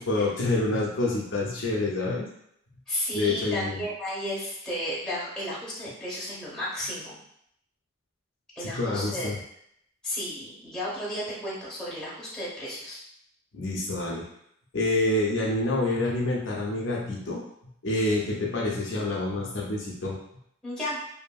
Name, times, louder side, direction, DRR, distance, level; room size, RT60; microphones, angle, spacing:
voice 1, 0.0-2.3 3.1-3.8 8.6-9.4 13.5-14.2 14.7-17.4 17.8-20.2, left 2 dB, 60° left, -3 dB, 0.5 m, -27 dB
voice 2, 2.9-7.2 8.6-9.4 10.0-13.0 20.6-21.0, equal, 5° left, -7 dB, 0.9 m, -33 dB
2.7 x 2.6 x 2.3 m, 0.72 s
head